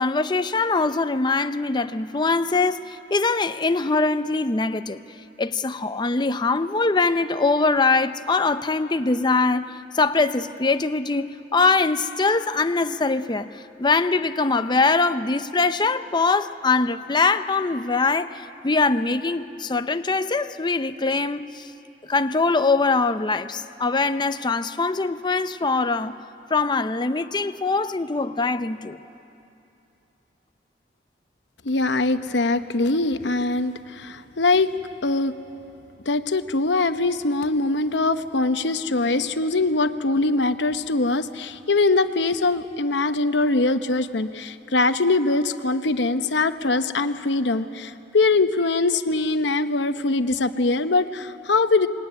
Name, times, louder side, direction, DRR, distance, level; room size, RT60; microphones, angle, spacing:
voice 1, 0.0-5.0 5.4-21.7 22.1-26.2 26.5-29.0, left 3 dB, 25° left, 0.6 m, -22 dB
voice 2, 31.6-34.7 35.0-35.3 36.1-51.9, left 3 dB, 75° left, 0.9 m, -22 dB
25.5 x 21.5 x 9.7 m
head